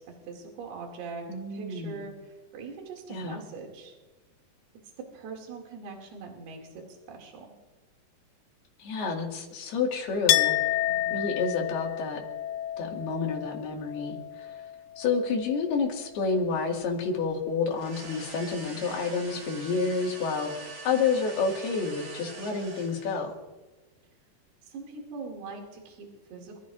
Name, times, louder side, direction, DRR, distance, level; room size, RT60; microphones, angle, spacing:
voice 1, 0.0-3.9 5.0-7.5 10.8-11.3 24.6-26.6, right 4 dB, 70° right, 0 dB, 4.4 m, -42 dB
voice 2, 1.3-2.0 3.1-3.4 8.8-10.6 11.1-12.2 12.8-14.5 15.0-23.3, left 4 dB, 70° left, 1 dB, 3.9 m, -29 dB
Chink clink, 10.3-15.8 16.1-17.0, left 13 dB, 85° left, 2.7 m, -30 dB
sound 1, 17.7-23.3, right 3 dB, 35° right, 4.0 m, -44 dB
28.0 x 14.5 x 2.6 m, 1.2 s
omnidirectional pair, 4.8 m